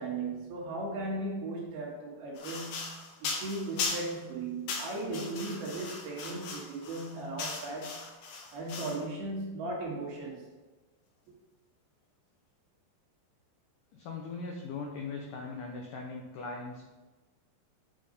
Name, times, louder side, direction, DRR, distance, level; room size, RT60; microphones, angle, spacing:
voice 1, 0.0-2.9 3.2-8.0 8.5-10.5, right 2 dB, 65° right, -3 dB, 3.4 m, -37 dB
sound 1, 2.4-4.2 4.7-9.0, left 4 dB, 65° left, 2.5 m, -38 dB
voice 2, 13.9-16.9, left 4 dB, 85° left, 0 dB, 1.8 m, -40 dB
9.2 x 4.5 x 5.2 m, 1.2 s
omnidirectional pair, 5.0 m